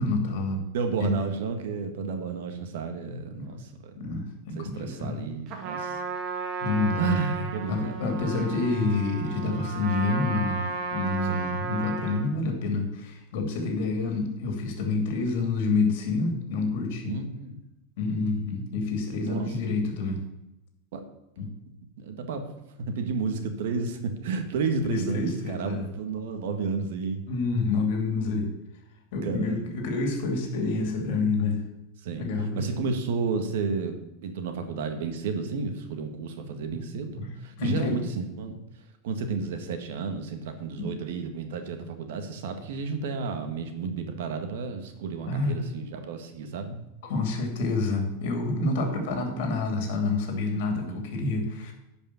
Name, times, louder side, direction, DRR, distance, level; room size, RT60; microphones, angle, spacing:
voice 1, 0.0-0.6 1.0-1.2 4.0-5.2 6.6-7.2 7.7-17.2 18.0-20.2 21.4-21.5 24.8-25.9 27.3-28.5 29.1-31.6 32.1-32.7 36.7-36.8 37.2-37.3 37.6-38.0 40.8-40.9 45.3-45.6 47.0-51.7, left 3 dB, 60° left, 4 dB, 2.7 m, -28 dB
voice 2, 0.7-3.9 4.6-6.0 7.0-7.9 11.2-11.6 17.0-17.6 19.2-19.5 20.9-21.0 22.0-22.5 22.8-27.2 29.2-29.7 32.0-32.3 32.6-38.6 39.0-46.8 50.9-51.1, right 5 dB, 70° right, 6 dB, 1.6 m, -32 dB
Trumpet, 5.5-12.3, right 5 dB, 40° right, 1.5 m, -34 dB
11.0 x 5.4 x 7.0 m, 0.89 s
supercardioid pair, 160°, 0 cm